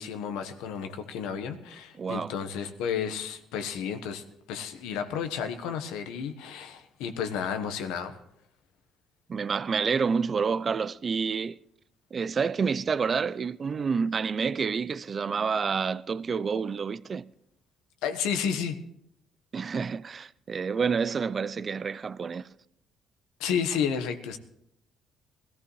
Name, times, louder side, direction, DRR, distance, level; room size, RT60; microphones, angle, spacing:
voice 1, 0.0-8.1 18.0-18.8 23.4-24.4, left 7 dB, 85° left, 1.2 m, -32 dB
voice 2, 2.0-2.3 9.3-11.6 12.1-17.2 19.5-22.5, right 5 dB, 40° right, 0.4 m, -28 dB
21.0 x 14.5 x 3.2 m
supercardioid pair, 75°, 0 cm